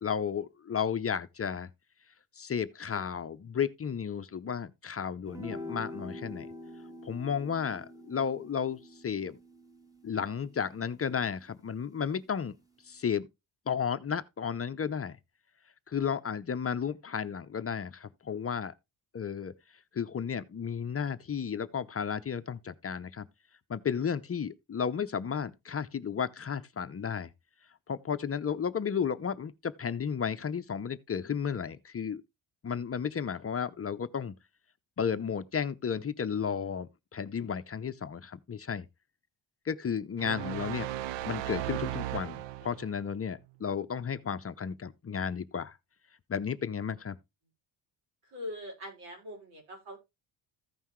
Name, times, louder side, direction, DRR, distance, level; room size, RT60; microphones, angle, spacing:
voice 1, 0.0-1.7 2.4-6.5 7.0-9.4 10.0-12.6 12.9-13.3 13.7-15.2 15.9-18.7 19.1-19.5 19.9-23.3 23.7-27.3 27.9-32.2 32.6-34.3 35.0-38.9 39.7-40.9 41.2-45.8 46.3-47.2, left 7 dB, 30° left, 0.6 m, -33 dB
sound 1, 5.3-11.8, left 1 dB, 5° right, 1.4 m, -46 dB
sound 2, 40.2-43.0, right 14 dB, 65° right, 0.5 m, -36 dB
voice 2, 48.2-50.0, left 1 dB, 90° right, 5.6 m, -42 dB
15.0 x 5.6 x 3.1 m
cardioid pair, 100°, 47 cm